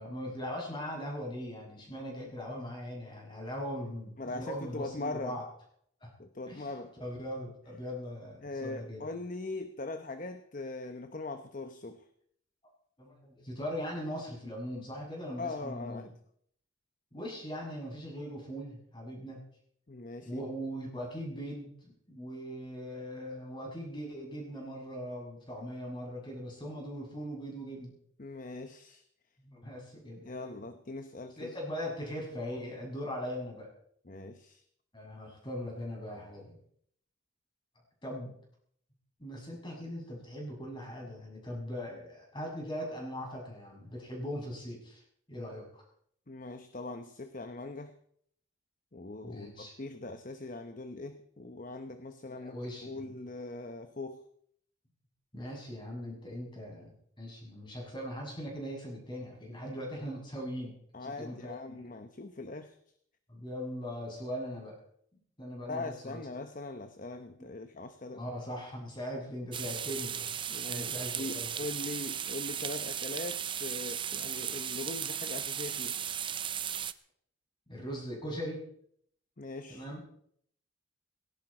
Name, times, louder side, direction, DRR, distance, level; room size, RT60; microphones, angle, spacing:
voice 1, 0.0-5.4 6.0-6.1 6.5-6.7 7.0-9.0 13.0-16.1 17.1-19.4 20.2-27.9 29.4-30.5 31.4-33.7 34.9-36.6 38.0-38.3 39.2-45.0 45.3-45.8 49.2-49.7 52.3-53.1 55.3-60.7 61.0-61.8 63.3-64.8 65.4-66.2 67.4-67.5 68.1-70.3 70.7-71.5 77.7-78.6 79.7-80.0, equal, 25° left, -1 dB, 6.8 m, -40 dB
voice 2, 4.2-5.4 6.2-6.9 8.4-12.1 15.4-16.1 19.9-20.5 28.2-29.0 30.2-31.5 34.1-34.6 46.3-48.0 48.9-54.3 60.9-62.8 65.7-68.3 70.5-76.0 79.4-79.9, left 2 dB, 40° left, 8 dB, 0.9 m, -41 dB
sound 1, 69.5-76.9, right 9 dB, 25° right, 0.5 m, -36 dB
19.0 x 17.0 x 4.4 m, 0.67 s
head